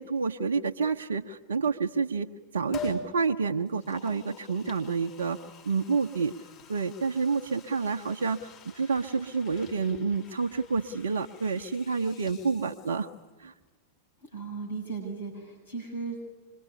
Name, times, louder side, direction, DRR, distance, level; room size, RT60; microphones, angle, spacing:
voice 1, 0.0-2.3 2.5-5.4 5.6-6.3 6.7-13.1 13.4-13.5, right 5 dB, 70° right, 4 dB, 1.0 m, -29 dB
Liquid, 2.7-3.1 3.7-13.3 13.6-13.7, left 4 dB, 40° left, 6.4 m, -47 dB
voice 2, 14.2-16.4, right 4 dB, 75° left, 1 dB, 6.6 m, -37 dB
25.5 x 23.0 x 9.8 m, 1.3 s
figure-of-eight pair, 90°, 0 cm